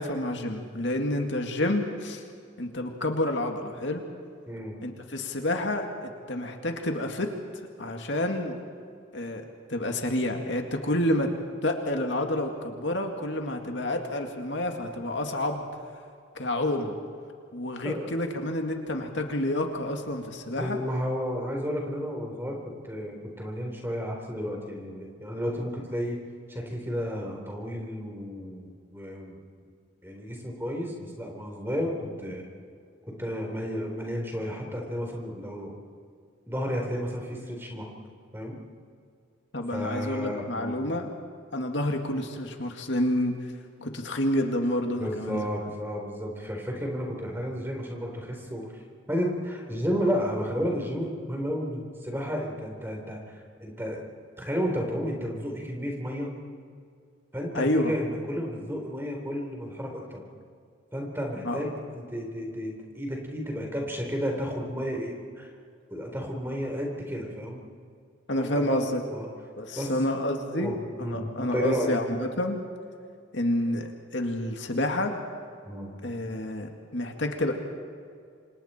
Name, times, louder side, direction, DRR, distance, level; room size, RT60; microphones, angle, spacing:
voice 1, 0.0-2.2 2.6-4.0 4.8-7.3 7.8-8.6 9.1-9.4 9.7-11.3 11.6-15.7 16.3-17.0 17.5-20.8 39.5-41.1 41.5-43.4 43.8-45.5 57.5-58.0 61.4-61.6 68.3-69.0 69.6-72.6 73.3-75.2 76.0-77.5, left 1 dB, 65° left, 3 dB, 2.1 m, -29 dB
voice 2, 4.5-4.8 17.8-18.1 20.6-22.6 22.8-26.2 26.5-29.4 30.0-32.4 33.2-35.7 36.5-37.9 38.3-38.6 39.7-40.8 45.0-48.8 49.1-54.0 54.4-56.3 57.3-60.2 60.9-65.5 65.9-67.6 68.4-68.8 69.1-69.3 69.8-69.9 70.5-71.9 75.7-75.9, equal, 10° right, 1 dB, 3.8 m, -32 dB
29.5 x 26.0 x 4.4 m, 2.3 s
head